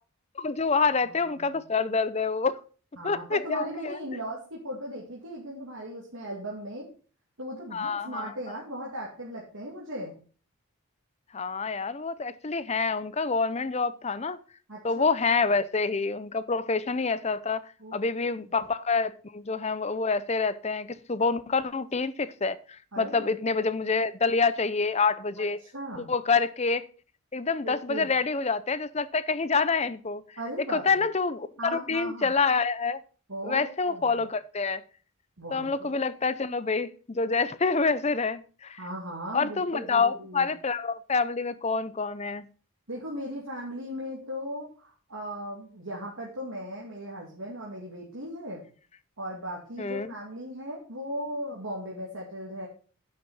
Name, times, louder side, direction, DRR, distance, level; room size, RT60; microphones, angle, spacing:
voice 1, 0.4-2.6 3.0-4.0 7.7-8.3 11.3-14.4 14.8-25.6 26.1-26.8 27.3-30.2 30.7-33.0 33.4-34.8 35.5-38.8 39.3-42.5 49.8-50.1, left 4 dB, 30° left, 0.6 m, -27 dB
voice 2, 1.0-1.6 3.0-6.9 7.4-10.2 14.7-15.6 17.8-18.0 22.9-23.3 25.4-26.1 27.6-28.1 30.4-31.1 31.6-32.3 33.3-34.2 35.4-36.0 38.8-40.5 42.9-48.6 49.2-52.7, equal, 70° right, 2.5 m, -38 dB
10.5 x 6.2 x 5.5 m
head